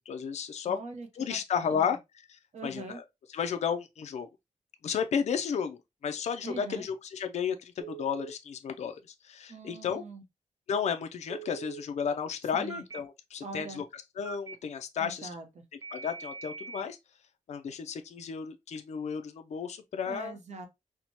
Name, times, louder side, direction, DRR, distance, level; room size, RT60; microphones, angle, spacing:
voice 1, 0.1-0.8 1.1-3.0 3.3-4.3 4.8-10.0 10.7-15.3 15.9-17.0 17.5-20.4, left 7 dB, 55° left, 0.4 m, -33 dB
voice 2, 0.6-2.0 2.5-3.0 6.4-6.8 9.5-10.2 12.5-12.8 13.4-13.8 15.0-15.6 20.1-20.7, right 3 dB, 60° right, 0.7 m, -43 dB
Telephone, 7.8-8.3 11.3-11.8 12.7-13.0 14.2-14.6 15.8-16.8, right 5 dB, 25° right, 0.4 m, -42 dB
4.4 x 2.1 x 2.8 m
wide cardioid pair, 170°, 13 cm